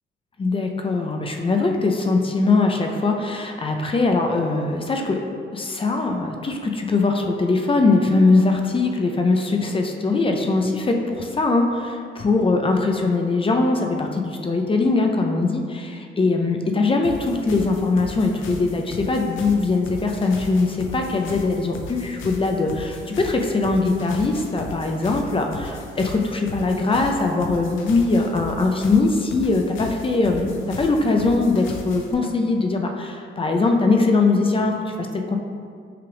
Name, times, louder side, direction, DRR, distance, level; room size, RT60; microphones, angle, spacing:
voice 1, 0.4-5.2 5.5-35.4, left 3 dB, 25° left, 3 dB, 0.4 m, -21 dB
sound 1, 17.0-32.1, left 3 dB, 85° left, 0.5 m, -37 dB
5.7 x 2.5 x 3.4 m, 2.2 s
cardioid pair, 85°, 20 cm